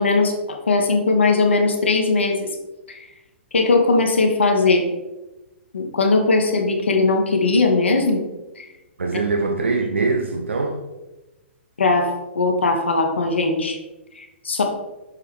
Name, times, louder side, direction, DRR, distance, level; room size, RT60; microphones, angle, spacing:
voice 1, 0.0-2.5 2.9-3.1 3.5-4.8 5.7-8.2 8.6-8.7 11.8-13.8 14.1-14.6, left 3 dB, 65° left, 3 dB, 1.1 m, -19 dB
voice 2, 9.0-10.8, right 3 dB, 70° right, 4 dB, 0.5 m, -22 dB
6.7 x 4.5 x 3.5 m, 1.1 s
figure-of-eight pair, 115°, 7 cm